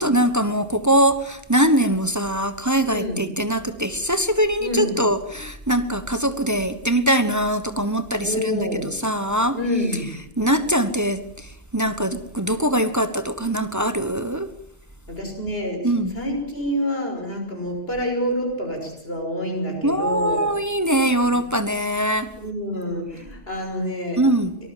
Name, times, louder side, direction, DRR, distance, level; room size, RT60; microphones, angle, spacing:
voice 1, 0.0-9.6 10.4-14.5 15.8-16.1 19.8-22.3 24.2-24.6, right 1 dB, 15° right, 10 dB, 1.1 m, -22 dB
voice 2, 2.9-3.2 4.6-5.0 8.2-9.0 9.5-10.1 15.1-20.5 21.2-21.3 22.4-24.2, equal, 60° left, 3 dB, 6.5 m, -27 dB
24.0 x 19.5 x 7.5 m, 0.75 s
omnidirectional pair, 1.1 m